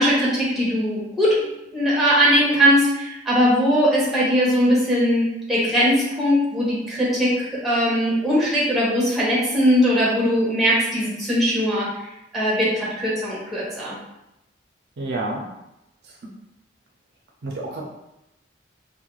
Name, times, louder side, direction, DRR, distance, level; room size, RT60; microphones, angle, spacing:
voice 1, 0.0-11.9 12.3-14.0, equal, ahead, -7 dB, 0.7 m, -20 dB
voice 2, 15.0-15.5 16.0-16.2 17.4-17.9, right 2 dB, 60° right, -1 dB, 0.4 m, -29 dB
2.3 x 2.1 x 3.0 m, 0.90 s
head